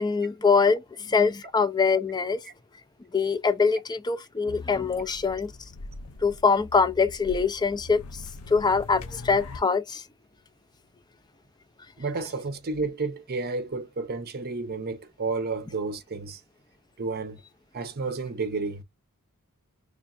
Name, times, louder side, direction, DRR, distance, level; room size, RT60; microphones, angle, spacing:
voice 1, 0.0-2.4 3.1-5.5 6.2-8.0 8.5-10.0, left 5 dB, 20° left, 0.4 m, -23 dB
sound 1, 4.5-9.6, left 3 dB, 70° left, 0.6 m, -42 dB
voice 2, 12.0-16.4 17.0-17.4 17.7-18.8, right 3 dB, 45° right, 0.7 m, -31 dB
3.3 x 2.3 x 4.1 m
head